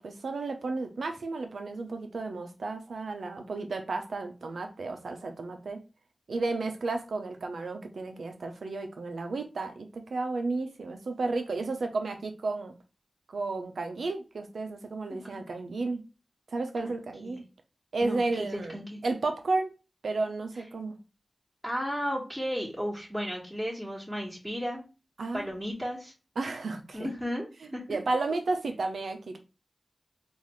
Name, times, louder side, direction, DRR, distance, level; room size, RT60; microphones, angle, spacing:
voice 1, 0.0-5.8 6.3-12.7 13.3-16.0 16.5-17.4 17.9-19.7 20.0-21.0 25.2-25.5 26.4-27.1 27.6-29.4, right 3 dB, 90° right, 6 dB, 0.6 m, -33 dB
voice 2, 15.1-15.4 16.8-16.9 17.2-17.4 18.0-19.0 21.6-24.8 25.3-26.1 26.9-28.0, equal, ahead, -5 dB, 1.6 m, -34 dB
3.9 x 2.6 x 3.1 m, 0.30 s
cardioid pair, 45°, 0 cm